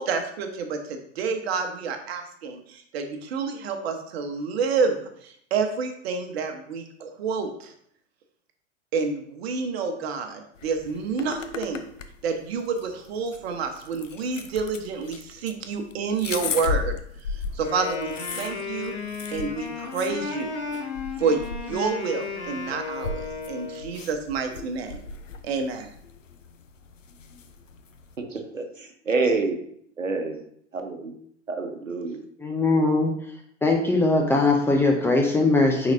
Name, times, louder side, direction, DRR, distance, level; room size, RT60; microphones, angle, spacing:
voice 1, 0.0-7.7 8.9-11.8 12.2-19.0 19.3-20.5 21.2-25.0 25.4-25.9, right 5 dB, 55° right, 5 dB, 1.1 m, -29 dB
sound 1, 10.6-28.1, left 5 dB, 80° left, 0.7 m, -37 dB
Wind instrument woodwind instrument, 17.6-23.9, left 5 dB, 65° left, 1.8 m, -34 dB
voice 2, 28.2-29.6 30.0-30.4 30.7-31.1 31.5-32.2, right 3 dB, 85° right, 5 dB, 0.9 m, -27 dB
voice 3, 32.4-33.1 33.6-35.9, left 2 dB, 5° left, 0 dB, 0.4 m, -20 dB
9.0 x 4.1 x 2.7 m, 0.67 s
figure-of-eight pair, 95°, 37 cm